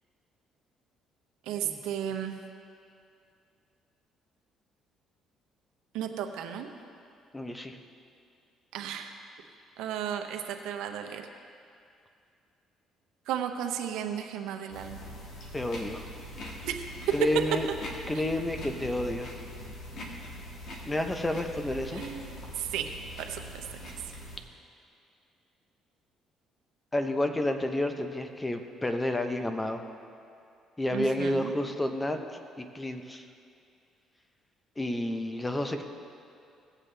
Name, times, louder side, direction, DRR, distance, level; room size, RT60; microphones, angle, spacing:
voice 1, 1.5-2.4 5.9-6.7 8.7-9.1 9.8-11.2 13.3-15.0 16.6-16.8 21.9-22.9 23.2-23.4 30.9-31.6, right 9 dB, 85° right, 5 dB, 0.8 m, -34 dB
voice 2, 7.3-7.8 15.5-16.1 17.1-17.7 18.1-19.3 20.8-22.0 26.9-29.9 30.8-32.2 32.6-33.2 34.8-35.8, left 1 dB, 15° left, 6 dB, 0.8 m, -30 dB
sound 1, 14.7-24.4, equal, 60° left, 1.8 m, -42 dB
18.0 x 7.4 x 3.4 m, 2.5 s
cardioid pair, 90°, 0 cm